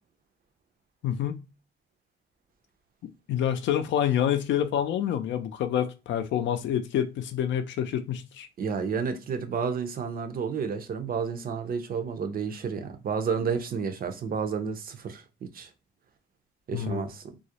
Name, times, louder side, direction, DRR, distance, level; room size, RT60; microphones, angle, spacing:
voice 1, 1.0-1.4 3.3-8.5 16.7-17.1, left 10 dB, 70° left, 0.4 m, -27 dB
voice 2, 8.6-15.7 16.7-17.2, right 6 dB, 50° right, 0.5 m, -31 dB
2.3 x 2.0 x 2.7 m
cardioid pair, 90°, 20 cm